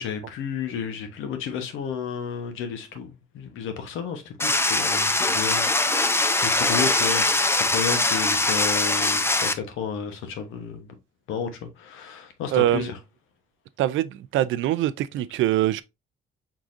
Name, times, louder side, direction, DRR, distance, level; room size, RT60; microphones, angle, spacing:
voice 1, 0.0-10.9 11.3-13.0, left 7 dB, 85° left, 1.0 m, -32 dB
sound 1, 4.4-9.5, left 2 dB, 10° left, 0.5 m, -22 dB
voice 2, 12.5-12.9 13.8-15.8, right 13 dB, 80° right, 0.4 m, -23 dB
4.7 x 3.7 x 2.5 m
cardioid pair, 90°, 20 cm